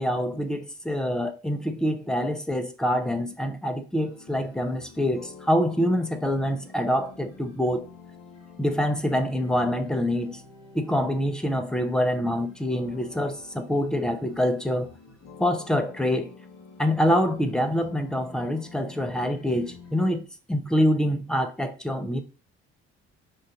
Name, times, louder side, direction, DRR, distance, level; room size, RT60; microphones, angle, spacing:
voice 1, 0.0-7.9 8.6-10.4 10.7-14.9 15.4-16.3 16.8-22.2, equal, ahead, 0.7 m, -25 dB
sound 1, 3.9-20.2, left 4 dB, 60° left, 1.6 m, -48 dB
5.6 x 2.5 x 3.6 m
figure-of-eight pair, 50°, 36 cm